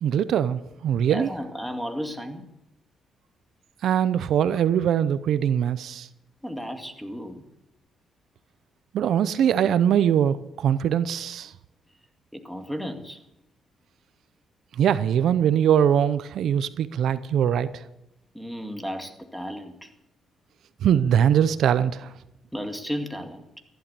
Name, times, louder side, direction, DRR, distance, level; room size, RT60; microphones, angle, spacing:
voice 1, 0.0-1.3 3.8-6.1 8.9-11.5 14.8-17.8 20.8-22.1, right 9 dB, 70° right, 14 dB, 0.7 m, -22 dB
voice 2, 1.1-2.5 6.4-7.4 12.3-13.2 18.3-19.9 22.5-23.6, equal, ahead, 6 dB, 2.1 m, -34 dB
15.0 x 11.5 x 6.9 m, 0.85 s
cardioid pair, 90°, 0 cm